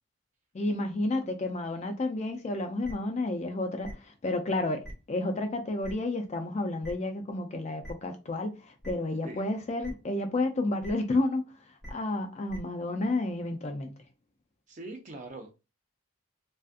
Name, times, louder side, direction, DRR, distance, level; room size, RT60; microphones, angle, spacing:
voice 1, 0.5-3.9 4.2-11.4 11.9-13.9, left 2 dB, 30° left, 0.3 m, -31 dB
sound 1, 2.8-2.9 3.8-3.9 4.8-4.9 5.8-5.9 6.8-6.9 7.8-7.9 8.8-8.9 9.8-9.9 10.8-10.9 11.8-11.9 12.5-12.6, equal, 5° left, 1.1 m, -42 dB
voice 2, 14.7-15.5, right 2 dB, 35° right, 0.5 m, -42 dB
2.5 x 2.3 x 2.4 m
head